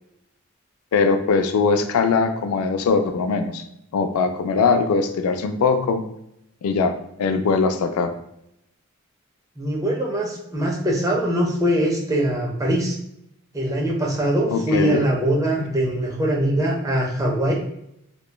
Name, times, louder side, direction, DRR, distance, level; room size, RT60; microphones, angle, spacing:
voice 1, 0.9-3.6 3.9-6.0 6.6-6.9 7.2-8.1 14.5-15.0 15.6-15.7, left 4 dB, 80° left, 8 dB, 0.3 m, -21 dB
voice 2, 9.6-13.0 13.5-17.6, right 1 dB, 15° right, -1 dB, 0.5 m, -22 dB
2.8 x 2.2 x 2.2 m, 0.78 s
head